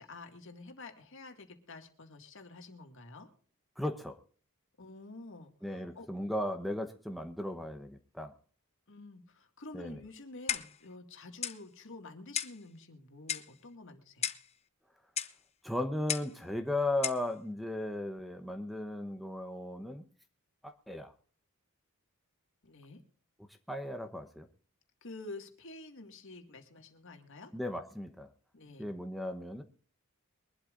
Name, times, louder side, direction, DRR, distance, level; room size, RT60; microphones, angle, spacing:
voice 1, 0.0-3.3 4.8-5.5 6.0-6.1 8.9-14.3 22.6-23.0 25.0-27.5 28.5-28.9, left 2 dB, 60° left, 5 dB, 2.1 m, -49 dB
voice 2, 3.8-4.2 5.6-8.3 9.7-10.0 15.6-20.0 20.6-21.1 23.7-24.5 27.5-28.3 28.8-29.6, left 1 dB, ahead, 4 dB, 0.9 m, -36 dB
Clock, 10.5-10.8 11.4-11.6 12.3-12.6 13.3-13.6 14.2-14.5 15.2-15.4 16.1-16.4 17.0-17.3, left 9 dB, 30° left, 0.7 m, -35 dB
23.0 x 12.0 x 2.5 m, 0.44 s
head